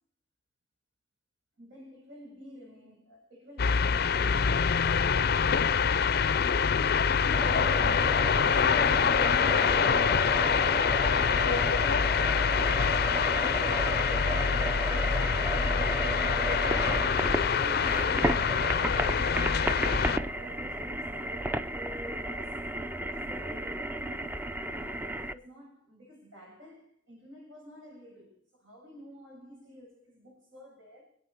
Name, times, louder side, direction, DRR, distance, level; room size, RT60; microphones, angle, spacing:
voice 1, 1.6-8.4 8.7-12.9 13.3-18.9 19.3-24.4 24.7-31.1, equal, 80° right, 7.2 m, -50 dB
sound 1, 3.6-20.2, left 6 dB, 50° left, 0.5 m, -25 dB
sound 2, 7.3-25.3, right 1 dB, 10° right, 0.5 m, -33 dB
25.0 x 8.6 x 4.5 m
head